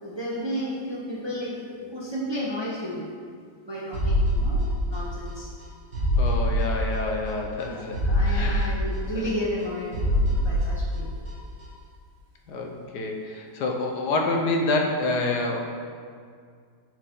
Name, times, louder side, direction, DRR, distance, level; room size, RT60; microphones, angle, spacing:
voice 1, 0.0-3.1 3.6-5.5 7.7-11.2, equal, 20° right, -5 dB, 0.7 m, -33 dB
sound 1, 3.9-5.3 5.6-5.7 5.9-7.3 7.6-7.7 7.9-9.6 9.9-11.3 11.6-11.7, equal, 45° right, 1.5 m, -24 dB
voice 2, 6.2-8.0 8.2-8.8 9.2-9.3 12.5-15.6, left 2 dB, 70° left, 1 dB, 1.4 m, -27 dB
10.5 x 4.9 x 3.8 m, 2.1 s
omnidirectional pair, 1.9 m